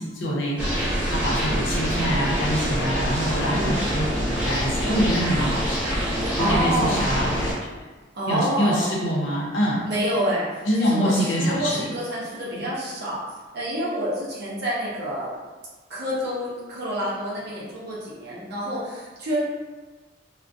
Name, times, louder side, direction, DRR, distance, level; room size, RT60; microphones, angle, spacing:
voice 1, 0.0-5.9 6.4-7.5 8.3-9.9 10.7-12.0 12.5-12.6, equal, 80° left, -4 dB, 0.6 m, -25 dB
sound 1, 0.6-7.5, equal, 10° right, 0.7 m, -25 dB
voice 2, 3.5-3.8 6.4-7.1 8.1-8.9 9.9-13.2 13.5-15.3 15.9-19.4, equal, 60° right, -7 dB, 0.6 m, -27 dB
2.3 x 2.1 x 2.5 m, 1.3 s
head